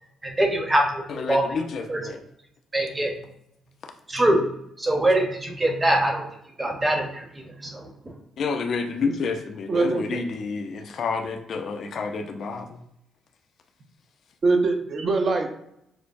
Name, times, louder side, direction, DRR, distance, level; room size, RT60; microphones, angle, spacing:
voice 1, 0.2-1.4 1.9-2.0 2.7-3.1 4.1-4.4 4.8-6.3 6.6-7.2 7.6-7.9, right 1 dB, 20° right, 2 dB, 1.0 m, -23 dB
voice 2, 1.1-2.2 8.4-12.8, left 4 dB, 60° left, 5 dB, 0.5 m, -29 dB
voice 3, 9.7-10.2 14.4-15.5, right 3 dB, 45° right, 4 dB, 0.8 m, -23 dB
6.4 x 2.2 x 2.6 m, 0.76 s
cardioid pair, 90°, 0 cm